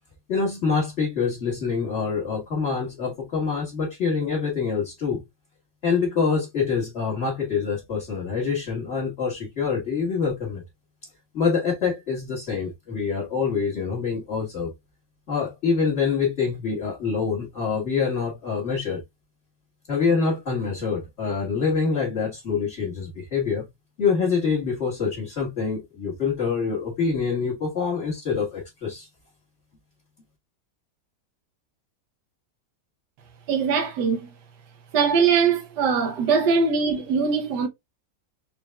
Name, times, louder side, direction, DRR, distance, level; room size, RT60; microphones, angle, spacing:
voice 1, 0.3-5.2 5.8-10.6 11.3-14.7 15.3-19.0 19.9-23.7 24.0-29.1, left 5 dB, 40° left, 1.7 m, -25 dB
voice 2, 33.5-34.3 34.9-37.7, right 5 dB, 75° right, 1.4 m, -21 dB
4.6 x 3.4 x 2.2 m
omnidirectional pair, 1.9 m